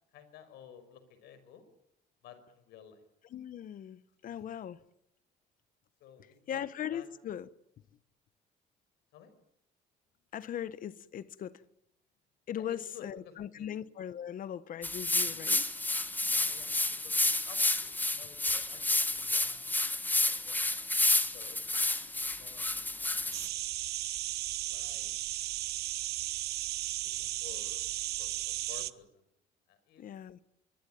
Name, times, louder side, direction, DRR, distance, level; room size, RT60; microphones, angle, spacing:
voice 1, 0.1-1.6 2.2-3.0 6.0-6.6 6.9-7.1 9.1-9.3 12.6-13.1 13.5-13.7 16.2-16.8 17.0-21.6 22.0-22.1 22.4-23.6 24.7-25.1 27.0-27.8 28.2-29.1 29.7-30.0, left 9 dB, 80° left, 5.9 m, -54 dB
voice 2, 3.3-4.8 6.5-7.5 10.3-11.6 12.5-15.7 30.0-30.4, left 10 dB, 55° left, 1.3 m, -39 dB
sound 1, 14.8-23.5, left 2 dB, 10° left, 1.5 m, -30 dB
sound 2, 23.3-28.9, right 15 dB, 70° right, 0.9 m, -35 dB
25.5 x 23.0 x 9.2 m
cardioid pair, 110°, 17 cm